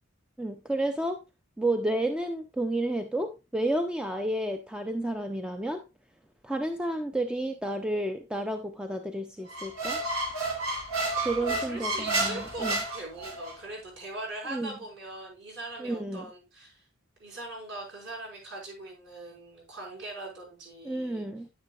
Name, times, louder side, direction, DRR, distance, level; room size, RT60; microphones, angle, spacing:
voice 1, 0.4-1.2 1.6-5.8 6.4-10.0 11.2-12.8 14.5-14.7 15.8-16.3 20.8-21.5, right 1 dB, 5° right, 6 dB, 0.4 m, -31 dB
Squeak, 9.5-13.6, right 2 dB, 75° right, 2.2 m, -31 dB
voice 2, 11.5-16.8 17.2-21.2, right 2 dB, 50° right, -2 dB, 5.1 m, -41 dB
9.6 x 9.4 x 2.4 m, 0.26 s
head